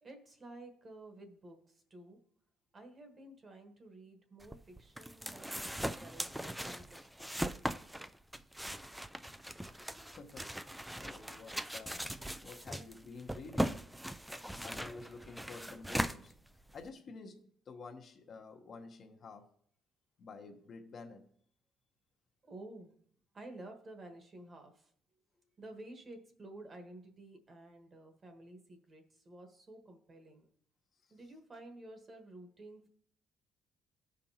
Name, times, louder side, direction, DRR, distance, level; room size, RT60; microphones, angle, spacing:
voice 1, 0.0-2.2 2.7-5.6 6.0-7.6 22.4-23.0 23.3-24.9 25.6-30.4 31.1-32.9, right 2 dB, 30° right, 1.3 m, -52 dB
sound 1, 4.4-16.9, right 1 dB, 5° right, 0.3 m, -40 dB
voice 2, 10.1-10.6 11.0-13.9 14.6-16.3 16.7-19.5 20.2-21.3, left 4 dB, 45° left, 0.9 m, -50 dB
15.0 x 5.1 x 2.9 m
cardioid pair, 125°, 0 cm